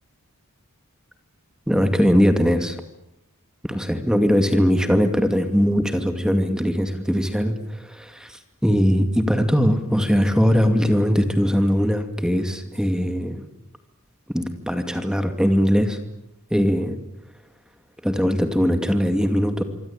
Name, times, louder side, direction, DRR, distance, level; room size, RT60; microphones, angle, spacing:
voice 1, 1.7-2.8 3.6-13.4 14.3-16.0 16.5-17.0 18.0-19.6, equal, 5° right, 7 dB, 2.4 m, -20 dB
25.5 x 25.0 x 8.9 m, 0.82 s
head